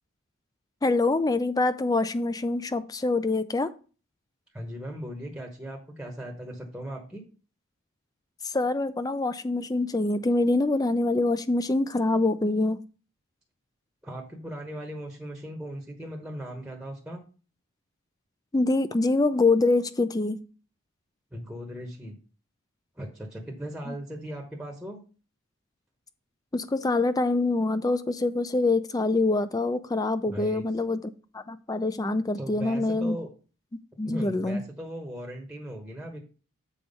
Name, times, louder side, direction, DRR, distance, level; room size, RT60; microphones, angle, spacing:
voice 1, 0.8-3.7 8.4-12.8 18.5-20.4 23.9-24.0 26.5-33.2 34.0-34.6, left 2 dB, 15° left, 13 dB, 0.4 m, -25 dB
voice 2, 4.5-7.2 14.0-17.2 21.3-22.1 23.0-25.0 30.3-30.6 32.4-33.3 34.0-36.2, equal, 5° right, 1 dB, 1.0 m, -38 dB
7.2 x 4.4 x 5.3 m, 0.37 s
head